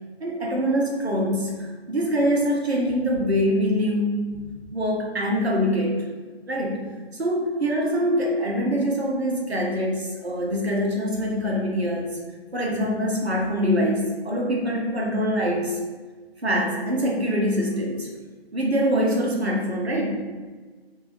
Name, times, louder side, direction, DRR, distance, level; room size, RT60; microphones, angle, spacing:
voice 1, 0.2-4.4 4.7-6.1 6.5-6.9 7.2-12.1 12.5-15.8 16.4-18.1 18.5-20.2, equal, 80° right, -1 dB, 0.9 m, -24 dB
3.0 x 2.6 x 2.9 m, 1.3 s
figure-of-eight pair, 140°, 31 cm